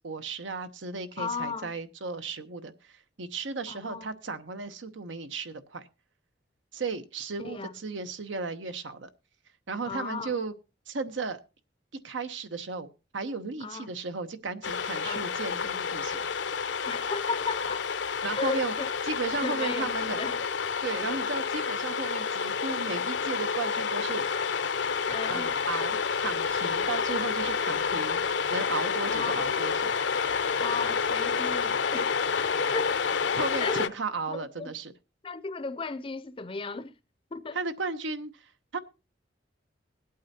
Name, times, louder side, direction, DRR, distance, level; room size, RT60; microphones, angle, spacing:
voice 1, 0.0-5.9 6.7-9.1 9.7-10.5 10.9-11.4 12.0-16.3 18.2-18.7 19.0-20.2 20.8-24.3 25.3-29.9 33.3-34.9 37.5-38.8, right 4 dB, 85° right, 0.9 m, -35 dB
voice 2, 1.2-1.7 3.7-4.1 7.4-7.7 9.8-10.4 13.6-13.9 15.0-15.3 16.9-17.9 18.3-18.9 19.4-20.4 25.1-25.6 29.1-29.4 30.6-32.1 32.7-32.9 33.6-33.9 34.3-34.7 35.2-36.9 37.3-37.6, left 4 dB, 30° left, 0.5 m, -35 dB
sound 1, 14.6-33.9, left 5 dB, 70° left, 0.6 m, -29 dB
20.5 x 8.6 x 2.8 m
head